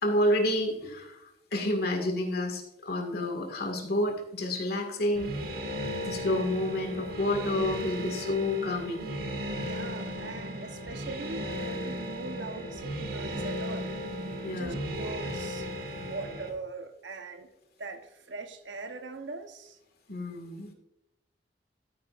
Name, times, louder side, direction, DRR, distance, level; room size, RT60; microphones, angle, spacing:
voice 1, 0.0-1.2 1.5-5.3 6.0-9.1 9.6-9.7 14.4-14.8 20.1-20.7, left 1 dB, 60° left, 4 dB, 2.0 m, -29 dB
sound 1, 5.2-16.5, equal, 60° right, 1.6 m, -36 dB
voice 2, 9.4-13.9 14.5-15.7 16.0-17.5 17.8-19.8, right 3 dB, 85° right, 7 dB, 1.0 m, -41 dB
13.5 x 9.4 x 2.5 m, 0.85 s
head